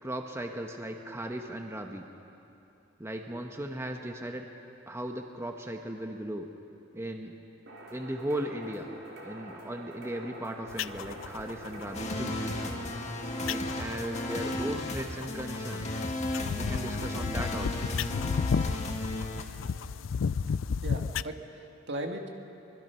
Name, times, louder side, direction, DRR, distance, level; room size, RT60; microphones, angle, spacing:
voice 1, 0.0-2.1 3.0-4.5 4.9-6.4 6.9-7.3 7.9-8.9 9.2-12.4 13.5-15.9 16.5-17.9, right 1 dB, 15° right, 3 dB, 1.1 m, -37 dB
sound 1, 7.7-14.5, right 1 dB, 90° right, 3.6 m, -46 dB
sound 2, 10.7-21.2, left 5 dB, 85° left, 0.4 m, -34 dB
sound 3, 11.9-19.4, left 1 dB, 40° left, 1.9 m, -34 dB
voice 2, 20.8-22.3, right 1 dB, 65° right, 3 dB, 1.9 m, -38 dB
24.5 x 21.0 x 5.7 m, 2.7 s
head